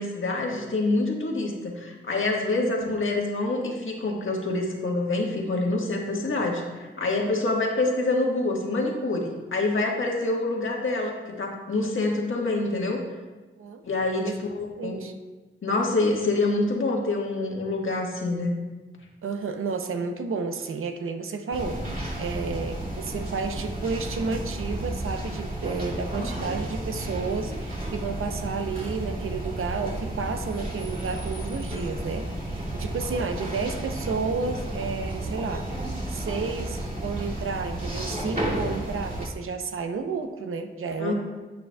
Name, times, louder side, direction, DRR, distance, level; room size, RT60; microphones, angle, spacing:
voice 1, 0.0-13.0 13.8-15.0 15.6-18.5 41.0-41.1, left 2 dB, 70° left, -1 dB, 1.5 m, -26 dB
voice 2, 14.7-15.1 19.2-21.8 22.2-35.7 36.1-41.1, right 4 dB, 85° right, 7 dB, 0.7 m, -31 dB
sound 1, 21.5-39.3, right 1 dB, 45° right, 2.3 m, -32 dB
9.7 x 8.1 x 2.3 m, 1.2 s
cardioid pair, 45°, 21 cm